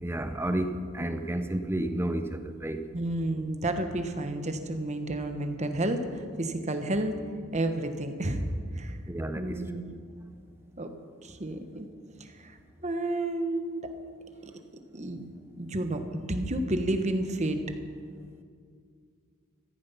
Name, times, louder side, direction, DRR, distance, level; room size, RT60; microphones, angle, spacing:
voice 1, 0.0-2.8 9.1-9.6, right 1 dB, 10° right, 8 dB, 0.6 m, -31 dB
voice 2, 2.9-7.1 7.5-8.4 8.8-9.0 9.3-9.9 10.8-10.9 11.2-11.9 12.4-12.5 12.8-13.9 14.4-14.5 14.9-15.3 15.6-17.6, right 1 dB, 30° right, 7 dB, 1.2 m, -31 dB
15.0 x 15.0 x 5.7 m, 2.2 s
head